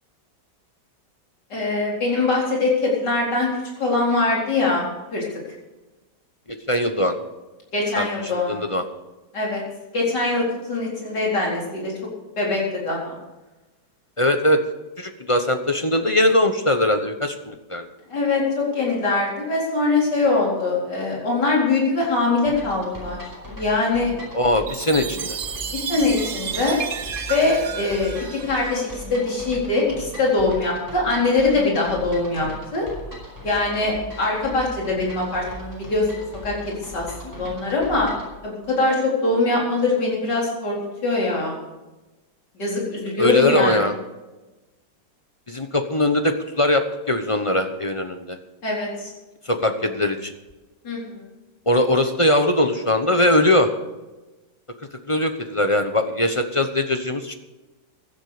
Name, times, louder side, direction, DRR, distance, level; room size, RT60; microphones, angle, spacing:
voice 1, 1.5-3.5 3.8-4.9 5.1-5.2 7.7-8.6 9.3-9.6 9.9-11.9 12.4-13.2 18.1-23.2 23.6-24.1 25.7-26.8 27.3-32.5 32.7-32.9 33.4-38.1 38.4-40.8 41.0-41.6 42.5-43.9 48.6-49.1 50.8-51.3, left 3 dB, 75° left, -3 dB, 4.8 m, -22 dB
voice 2, 6.7-7.2 8.0-8.1 8.5-8.8 14.2-14.6 15.0-17.9 24.3-25.4 43.2-43.9 45.5-48.4 49.5-50.3 51.7-53.7 55.1-57.3, left 1 dB, 25° left, 7 dB, 0.9 m, -20 dB
sound 1, 22.5-38.3, equal, 10° right, 4.6 m, -39 dB
Chime, 24.7-29.2, right 7 dB, 60° right, 0.5 m, -32 dB
16.0 x 11.5 x 5.0 m, 1.1 s
omnidirectional pair, 1.9 m